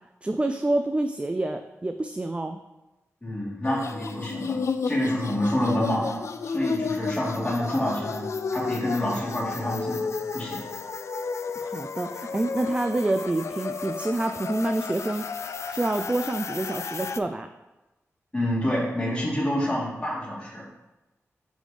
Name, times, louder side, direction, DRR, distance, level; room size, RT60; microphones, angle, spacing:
voice 1, 0.2-2.6 11.6-15.2 15.7-17.5, right 2 dB, 20° right, 7 dB, 0.3 m, -27 dB
voice 2, 3.2-4.6 4.8-10.0 10.3-10.6 18.3-20.7, left 1 dB, 20° left, -5 dB, 2.3 m, -27 dB
sound 1, 3.6-17.2, left 5 dB, 60° left, 0.3 m, -32 dB
4.8 x 4.2 x 5.0 m, 1.0 s
cardioid pair, 65°, 5 cm